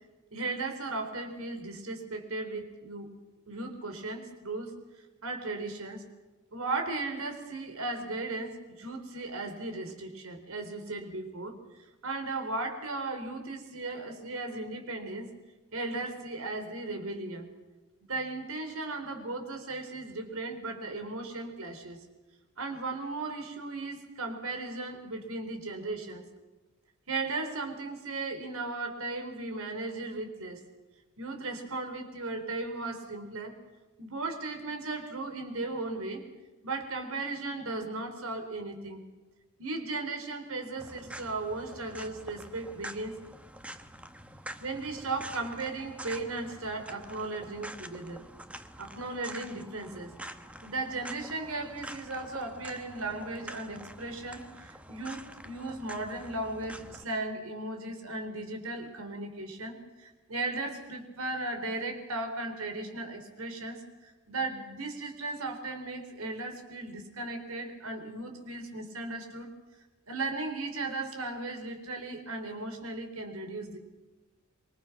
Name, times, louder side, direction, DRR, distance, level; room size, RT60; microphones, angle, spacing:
voice 1, 0.3-3.1 3.5-4.7 5.2-6.0 6.5-11.6 12.0-15.3 15.7-17.5 18.1-22.0 22.6-26.2 27.1-30.6 31.2-33.5 34.0-36.2 36.6-39.0 39.6-43.2 44.6-48.3 48.8-50.2 50.6-69.5 70.1-73.8, right 2 dB, 70° right, 6 dB, 4.2 m, -36 dB
sound 1, 40.8-57.0, right 1 dB, 5° right, 1.1 m, -46 dB
27.0 x 24.0 x 6.1 m, 1.1 s
head